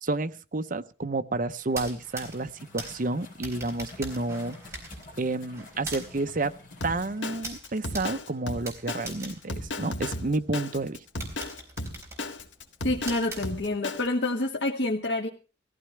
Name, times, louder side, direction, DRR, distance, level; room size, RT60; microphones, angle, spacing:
voice 1, 0.0-4.6 5.2-6.5 6.8-11.0, right 2 dB, 45° right, 9 dB, 0.8 m, -30 dB
sound 1, 1.6-10.4 10.8-10.9 11.2-14.0, right 2 dB, 15° right, 4.2 m, -43 dB
sound 2, 2.0-7.4, left 2 dB, 50° left, 3.5 m, -49 dB
Drum kit, 6.8-14.1, left 2 dB, 80° left, 1.8 m, -35 dB
voice 2, 12.8-15.3, left 2 dB, 65° left, 0 dB, 1.4 m, -27 dB
19.5 x 15.0 x 3.3 m, 0.33 s
head